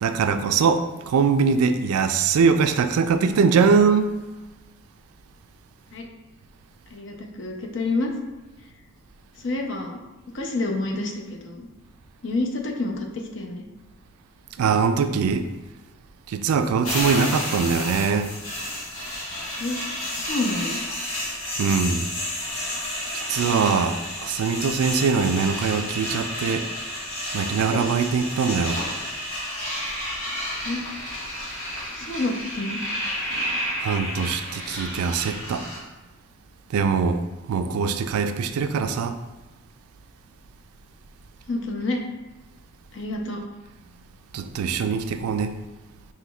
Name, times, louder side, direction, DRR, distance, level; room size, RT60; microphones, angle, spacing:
voice 1, 0.0-4.1 14.6-15.5 16.3-18.3 21.6-22.1 23.1-26.7 27.3-28.8 33.8-35.7 36.7-39.2 44.3-45.5, right 5 dB, 90° right, 0.3 m, -22 dB
voice 2, 6.9-8.1 9.4-10.0 10.3-11.7 12.2-13.6 19.6-19.8 20.1-20.8 30.6-30.8 31.9-32.8 41.5-42.0 42.9-43.4, left 2 dB, 60° left, 0.6 m, -28 dB
sound 1, 16.8-35.8, left 1 dB, 85° left, 1.4 m, -31 dB
5.7 x 2.9 x 2.3 m
head